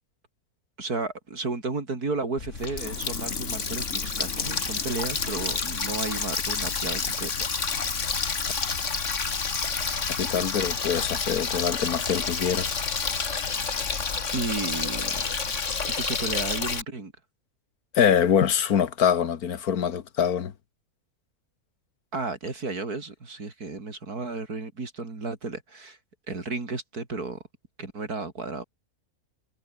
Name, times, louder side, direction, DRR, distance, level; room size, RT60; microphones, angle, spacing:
voice 1, 0.8-7.3 7.7-7.9 14.3-15.3 16.0-17.1 22.1-26.0 26.3-27.4 27.8-28.6, right 3 dB, 85° right, 4.5 m, -33 dB
Water tap faucet, 2.4-16.8, left 5 dB, 55° left, 2.2 m, -29 dB
voice 2, 10.2-12.8 17.9-20.5, left 8 dB, 80° left, 1.7 m, -24 dB
omnidirectional pair, 1.6 m